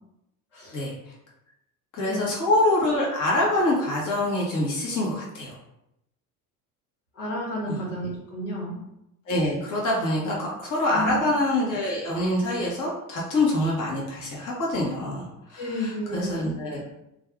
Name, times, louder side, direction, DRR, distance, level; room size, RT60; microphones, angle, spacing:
voice 1, 1.9-5.5 7.7-7.8 9.3-16.8, left 1 dB, 45° left, -5 dB, 1.2 m, -25 dB
voice 2, 7.1-8.8 10.9-11.1 15.6-16.5, left 1 dB, 75° left, -5 dB, 1.4 m, -31 dB
2.6 x 2.4 x 3.5 m, 0.84 s
hypercardioid pair, 65°, 43 cm